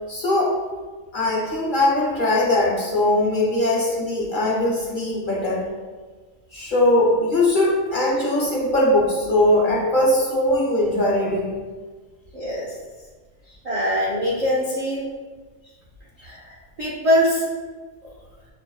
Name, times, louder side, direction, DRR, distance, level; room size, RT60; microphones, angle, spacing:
voice 1, 0.1-0.6 1.1-5.7 6.5-11.6 16.2-16.3, left 1 dB, 50° left, -4 dB, 0.7 m, -20 dB
voice 2, 12.3-12.7 13.6-15.0 16.2-16.4 16.8-17.5, equal, 55° right, -5 dB, 0.4 m, -22 dB
6.2 x 2.5 x 2.3 m, 1.4 s
omnidirectional pair, 1.4 m